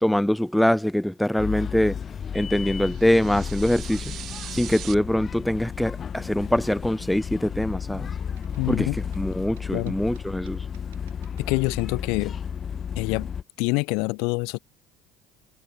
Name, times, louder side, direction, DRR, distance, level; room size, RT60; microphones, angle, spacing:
voice 1, 0.0-2.0 2.3-4.2 4.5-8.1 8.7-10.6, left 1 dB, 5° left, 0.4 m, -23 dB
sound 1, 1.4-13.4, left 7 dB, 40° left, 1.1 m, -33 dB
sound 2, 2.8-4.9, right 12 dB, 55° right, 2.1 m, -40 dB
sound 3, 8.4-12.2, right 17 dB, 80° right, 7.7 m, -59 dB
voice 2, 8.6-9.0 9.7-9.9 11.4-12.3 13.0-13.3 13.6-14.6, left 31 dB, 70° left, 1.0 m, -26 dB
hypercardioid pair, 65°, 0 cm